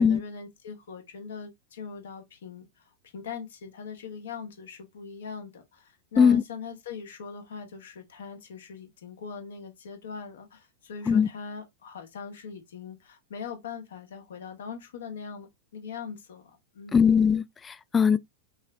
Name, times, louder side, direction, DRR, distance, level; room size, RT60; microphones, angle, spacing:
voice 1, 0.0-2.8 3.1-17.1, left 6 dB, 65° left, 1.3 m, -41 dB
voice 2, 16.9-18.2, left 6 dB, 20° left, 0.3 m, -20 dB
6.1 x 3.1 x 2.6 m
figure-of-eight pair, 90°, 0 cm